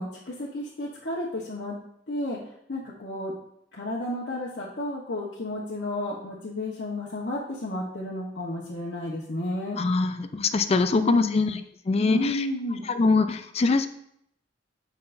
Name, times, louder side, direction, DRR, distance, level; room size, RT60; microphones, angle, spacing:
voice 1, 0.0-1.8 2.1-2.4 2.7-3.3 3.7-9.8 10.9-11.6 12.1-12.8, left 1 dB, 70° left, -5 dB, 1.1 m, -32 dB
voice 2, 9.8-11.6 11.9-12.5 12.9-13.9, left 3 dB, 35° left, 9 dB, 0.4 m, -23 dB
7.8 x 5.6 x 2.6 m, 0.72 s
head